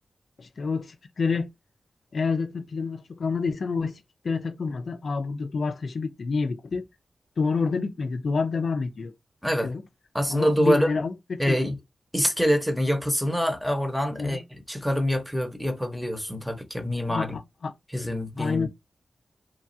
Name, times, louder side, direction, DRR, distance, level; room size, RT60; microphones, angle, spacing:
voice 1, 0.4-1.5 2.1-6.8 7.4-9.1 9.6-9.8 10.3-11.6 14.2-14.4 16.9-17.7 18.4-18.7, left 4 dB, 70° left, 0.3 m, -28 dB
voice 2, 10.1-10.9 11.4-11.8 12.1-14.4 14.7-17.3 17.9-18.7, equal, 5° right, 0.8 m, -25 dB
3.0 x 2.3 x 2.6 m
wide cardioid pair, 70°, 0 cm